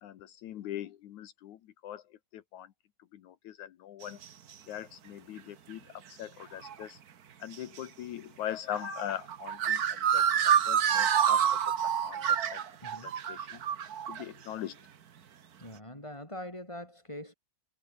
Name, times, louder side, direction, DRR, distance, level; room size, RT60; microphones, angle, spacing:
voice 1, 0.0-2.7 3.1-4.2 4.7-7.0 7.4-12.6 13.0-13.6 14.1-14.8, left 11 dB, 80° left, 2.7 m, -41 dB
sound 1, 4.0-4.2 5.7-5.8 6.6-6.8 7.5-7.6 8.5-14.2, right 8 dB, 65° right, 0.9 m, -28 dB
voice 2, 12.8-13.1 15.6-17.3, left 1 dB, 10° left, 7.7 m, -43 dB
omnidirectional pair, 3.4 m